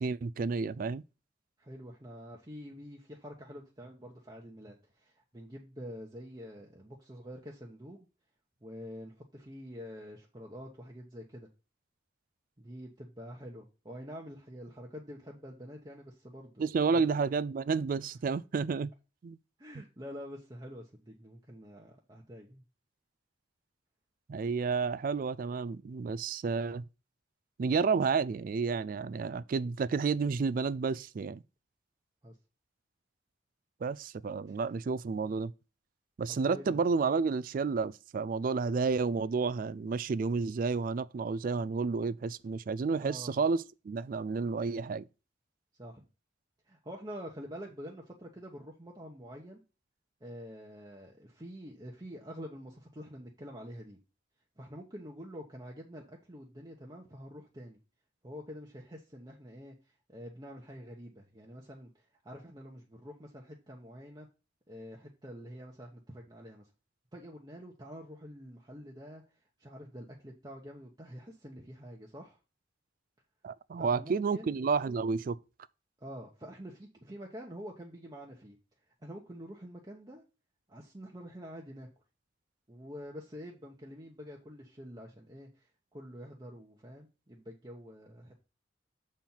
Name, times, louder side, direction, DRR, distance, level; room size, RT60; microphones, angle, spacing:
voice 1, 0.0-1.0 16.6-18.9 19.2-19.4 24.3-26.8 27.6-31.4 33.8-35.5 36.2-45.1 73.4-75.4, right 5 dB, 45° right, 0.3 m, -31 dB
voice 2, 1.6-8.1 8.6-11.5 12.6-17.1 19.6-22.6 32.2-32.4 34.5-34.6 36.3-36.8 43.0-43.4 45.8-46.1 46.7-49.6 50.2-54.0 54.6-57.8 58.2-64.3 64.7-66.7 67.1-69.2 69.6-72.4 73.8-74.6 76.0-78.6 79.0-80.2 80.7-81.9 82.7-88.3, equal, 20° right, 1.0 m, -47 dB
7.2 x 4.4 x 5.5 m
head